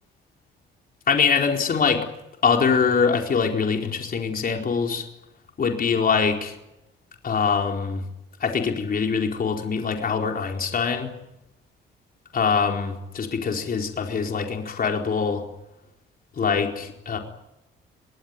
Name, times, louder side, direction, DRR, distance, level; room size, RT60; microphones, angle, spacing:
voice 1, 1.1-2.0 2.4-5.0 5.6-6.6 7.2-8.0 8.4-11.1 12.3-15.4 16.4-17.2, left 5 dB, 45° left, 2 dB, 4.4 m, -23 dB
24.0 x 19.0 x 9.7 m, 0.88 s
cardioid pair, 90°, 20 cm